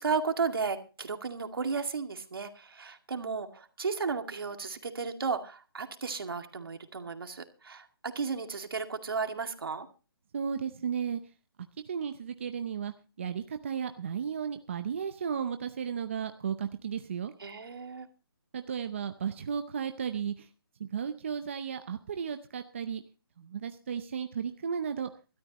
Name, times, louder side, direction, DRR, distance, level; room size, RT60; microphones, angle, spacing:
voice 1, 0.0-9.9 17.4-18.1, right 5 dB, 70° right, 6 dB, 2.2 m, -34 dB
voice 2, 10.3-11.2 11.9-17.3 18.5-20.5 20.8-23.0 23.4-25.1, right 7 dB, 30° right, 8 dB, 0.6 m, -34 dB
19.0 x 13.0 x 3.0 m, 0.32 s
hypercardioid pair, 175°, 13 cm